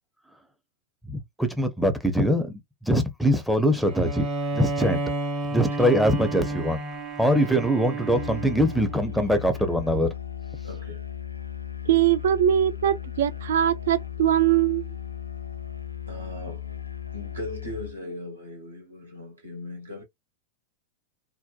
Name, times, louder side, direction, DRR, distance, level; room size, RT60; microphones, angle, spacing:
voice 1, 1.1-4.3 4.5-5.0 5.5-6.8 7.2-10.1, equal, ahead, 0.5 m, -23 dB
Bowed string instrument, 3.9-9.3, right 2 dB, 35° right, 0.9 m, -31 dB
voice 2, 5.5-5.8 7.4-7.5 10.6-11.0 16.1-16.8 17.1-20.0, left 1 dB, 75° right, 1.2 m, -39 dB
Musical instrument, 8.1-18.0, left 11 dB, 85° left, 0.4 m, -36 dB
voice 3, 11.9-14.9, right 11 dB, 60° right, 0.3 m, -21 dB
2.6 x 2.1 x 2.3 m
figure-of-eight pair, 90°, 0 cm